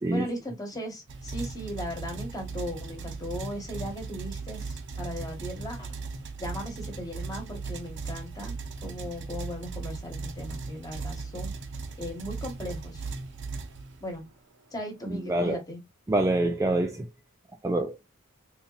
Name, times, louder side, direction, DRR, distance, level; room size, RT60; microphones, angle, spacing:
voice 1, 0.1-5.9 6.4-8.5 8.8-11.5 12.0-13.1 14.0-14.2 14.7-15.8, equal, 15° left, 1.3 m, -37 dB
sound 1, 1.1-14.3, right 4 dB, 55° right, 0.8 m, -37 dB
voice 2, 15.1-15.6 16.1-17.1 17.6-18.0, right 1 dB, 15° right, 0.3 m, -26 dB
4.0 x 2.8 x 2.4 m
head